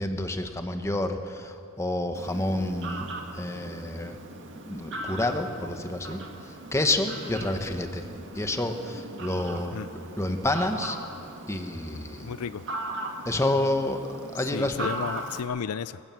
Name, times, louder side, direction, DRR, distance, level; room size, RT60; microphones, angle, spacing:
voice 1, 0.0-4.2 4.6-6.2 6.7-8.1 8.3-9.8 10.2-11.0 11.5-12.3 13.2-14.0 14.3-14.9, left 1 dB, 15° left, 6 dB, 1.3 m, -29 dB
Fowl, 2.1-15.4, right 2 dB, 55° right, 2.2 m, -39 dB
voice 2, 12.2-12.6 14.5-16.0, left 7 dB, 80° left, 16 dB, 0.4 m, -33 dB
26.0 x 15.5 x 7.7 m, 2.6 s
head